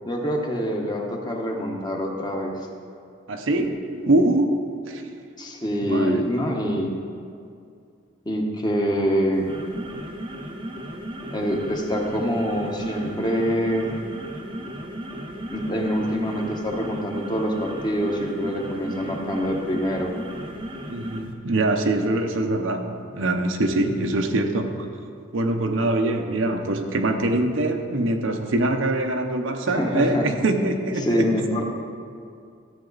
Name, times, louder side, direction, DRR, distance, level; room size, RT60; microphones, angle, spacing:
voice 1, 0.0-2.5 5.4-6.9 8.3-9.5 11.3-13.9 15.5-20.1 29.8-30.2 31.0-31.6, equal, 20° left, 1 dB, 1.0 m, -25 dB
voice 2, 3.3-4.5 4.8-5.0 5.8-6.2 20.9-24.9 25.3-31.3, right 2 dB, 75° right, 4 dB, 0.8 m, -23 dB
sound 1, 9.3-21.3, equal, 25° right, 0.8 m, -35 dB
13.5 x 8.1 x 4.0 m, 2.3 s
head